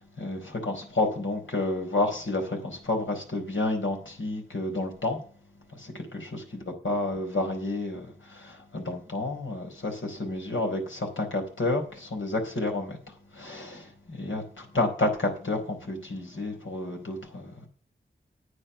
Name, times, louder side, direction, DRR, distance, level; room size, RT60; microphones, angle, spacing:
voice 1, 0.2-5.2 6.1-8.1 8.7-13.0 13.4-13.8 14.1-17.5, left 2 dB, 75° left, 2 dB, 4.6 m, -30 dB
9.8 x 8.8 x 7.0 m, 0.41 s
cardioid pair, 45°, 20 cm